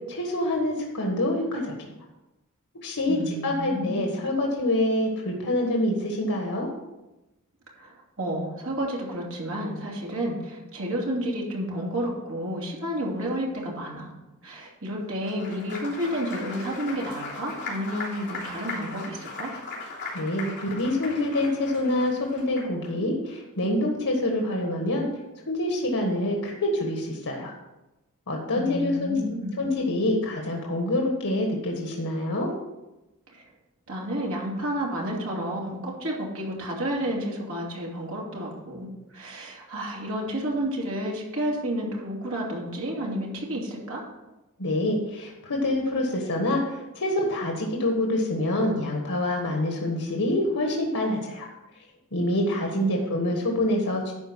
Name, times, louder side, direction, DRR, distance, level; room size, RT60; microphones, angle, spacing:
voice 1, 0.1-1.9 2.8-6.7 20.1-25.1 25.5-27.5 28.3-29.2 29.6-32.5 44.6-51.5 52.1-54.1, left 1 dB, 85° left, 1 dB, 1.5 m, -26 dB
voice 2, 3.1-4.1 7.8-14.1 14.4-19.5 28.5-29.6 33.3-33.5 33.9-44.0 52.8-53.1 53.5-53.6, equal, 60° right, -2 dB, 2.6 m, -31 dB
Applause, 15.1-22.9, left 3 dB, 50° left, 3.3 m, -38 dB
11.5 x 4.5 x 6.1 m, 1.0 s
head